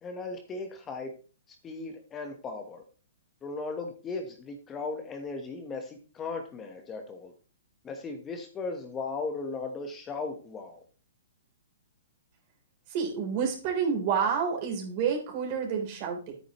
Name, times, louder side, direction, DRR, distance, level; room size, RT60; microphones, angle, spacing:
voice 1, 0.0-1.1 1.6-2.8 3.4-7.3 7.8-10.8, left 3 dB, 20° left, 5 dB, 1.2 m, -37 dB
voice 2, 12.9-16.3, right 6 dB, 45° right, 1 dB, 3.6 m, -29 dB
10.0 x 9.0 x 3.1 m, 0.38 s
hypercardioid pair, 135°, 0 cm